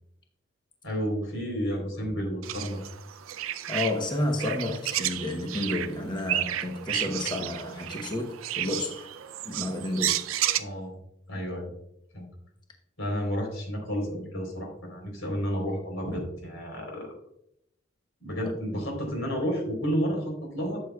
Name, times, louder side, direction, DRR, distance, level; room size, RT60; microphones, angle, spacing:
voice 1, 0.8-2.8 10.6-10.9 11.3-11.7 12.1-12.3 13.0-17.1 18.2-20.8, equal, 85° left, 3.8 m, -31 dB
sound 1, 2.4-10.6, right 12 dB, 85° right, 0.5 m, -32 dB
voice 2, 3.7-9.1 9.4-10.2, left 2 dB, 20° left, 0.9 m, -31 dB
12.5 x 8.0 x 2.3 m
head